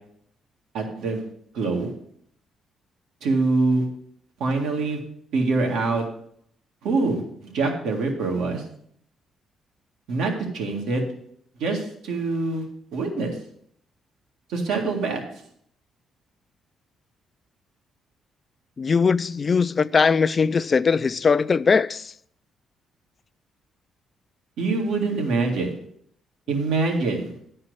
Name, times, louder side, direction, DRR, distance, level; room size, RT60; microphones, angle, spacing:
voice 1, 0.7-1.3 1.5-1.9 3.2-3.8 4.4-5.0 5.3-6.0 6.8-8.6 10.1-11.0 11.6-12.7 12.9-13.4 14.5-15.2 24.6-25.7 26.5-27.3, right 3 dB, 85° right, 1.9 m, -24 dB
voice 2, 18.8-22.1, left 5 dB, 40° left, 0.3 m, -20 dB
10.5 x 4.4 x 7.9 m
cardioid pair, 90°, 0 cm